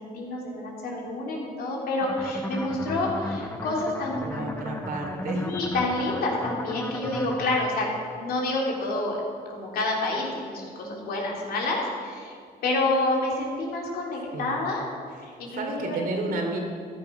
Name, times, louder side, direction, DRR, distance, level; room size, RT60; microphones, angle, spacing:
voice 1, 0.0-4.2 5.3-7.9 8.2-9.2 9.5-12.3 12.6-14.9 15.4-16.0, left 2 dB, 80° left, -2 dB, 3.4 m, -28 dB
sound 1, 2.0-7.6, left 1 dB, 15° left, 0.9 m, -35 dB
voice 2, 4.2-5.5 14.3-14.6 15.2-15.3 15.5-16.6, right 2 dB, 70° right, 2 dB, 2.9 m, -31 dB
14.5 x 10.5 x 5.9 m, 2.1 s
cardioid pair, 115°, 16 cm